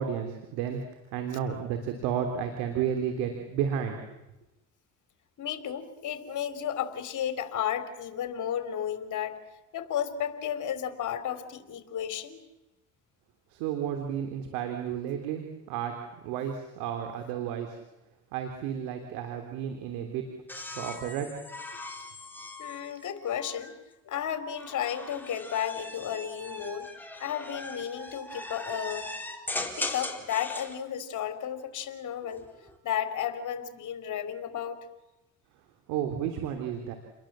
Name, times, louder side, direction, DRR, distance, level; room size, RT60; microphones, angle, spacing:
voice 1, 0.0-4.0 13.5-15.9 16.2-17.8 18.3-20.3 20.8-21.3 35.9-36.9, right 8 dB, 85° right, 5 dB, 3.4 m, -32 dB
voice 2, 5.4-9.4 9.7-12.4 22.6-23.7 24.1-26.9 27.2-29.1 29.8-32.4 32.8-34.8, left 9 dB, 55° left, 9 dB, 3.8 m, -33 dB
sound 1, 20.5-23.8 24.6-30.8 32.2-32.8, left 2 dB, 5° left, 4.3 m, -39 dB
29.5 x 22.0 x 7.6 m, 0.97 s
supercardioid pair, 85°, 35 cm